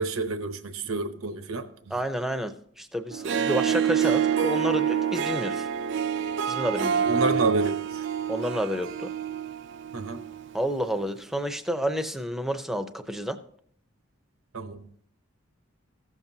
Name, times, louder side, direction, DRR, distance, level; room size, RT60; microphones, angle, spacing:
voice 1, 0.0-1.9 7.1-8.1 9.9-10.2 14.5-14.9, right 2 dB, 85° right, 9 dB, 0.9 m, -29 dB
voice 2, 1.9-5.7 6.5-7.1 8.3-9.1 10.5-13.4, equal, ahead, 8 dB, 0.6 m, -30 dB
Harp, 3.1-10.5, right 8 dB, 55° right, 0.3 m, -27 dB
16.0 x 7.3 x 2.7 m, 0.64 s
head